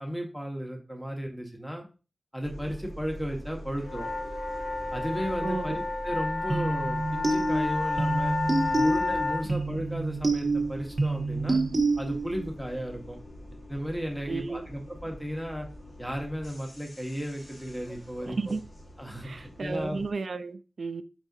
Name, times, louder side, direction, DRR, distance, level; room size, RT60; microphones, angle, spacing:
voice 1, 0.0-1.8 2.3-4.1 4.9-8.4 8.7-11.6 12.0-13.2 13.7-15.7 16.0-18.6 19.0-20.0, equal, 5° left, 1.1 m, -34 dB
sound 1, 2.4-20.1, equal, 50° left, 1.5 m, -44 dB
sound 2, 3.8-9.4, left 3 dB, 85° left, 1.0 m, -31 dB
voice 2, 5.4-5.8 9.4-9.6 14.3-14.7 18.3-18.6 19.2-21.0, right 4 dB, 70° right, 0.4 m, -33 dB
sound 3, 6.5-12.5, right 2 dB, 45° right, 0.8 m, -28 dB
4.8 x 4.0 x 2.7 m
wide cardioid pair, 105°, 0 cm